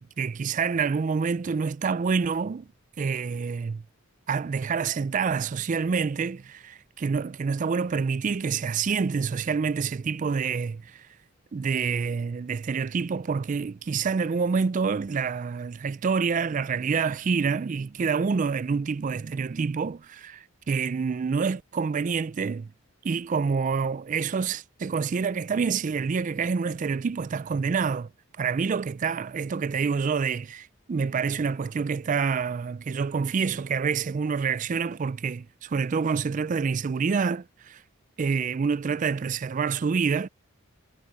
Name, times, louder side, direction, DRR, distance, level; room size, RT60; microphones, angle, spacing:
voice 1, 0.0-2.7 3.0-3.8 4.3-11.1 11.5-22.7 23.0-28.1 28.4-37.8 38.2-40.3, right 5 dB, 35° right, 0.3 m, -27 dB
head